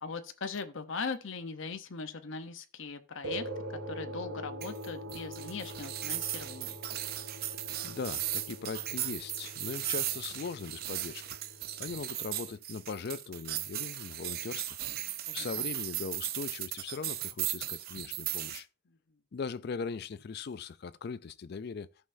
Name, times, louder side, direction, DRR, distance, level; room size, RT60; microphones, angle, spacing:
voice 1, 0.0-6.7 15.0-15.7, left 4 dB, 65° left, 0.7 m, -40 dB
sound 1, 3.2-12.0, right 1 dB, 90° right, 2.2 m, -44 dB
sound 2, 4.6-18.6, right 13 dB, 45° right, 0.5 m, -37 dB
voice 2, 7.5-11.4 11.8-14.8 15.3-18.7 19.3-21.9, left 5 dB, 50° left, 0.4 m, -40 dB
14.5 x 5.6 x 2.6 m
head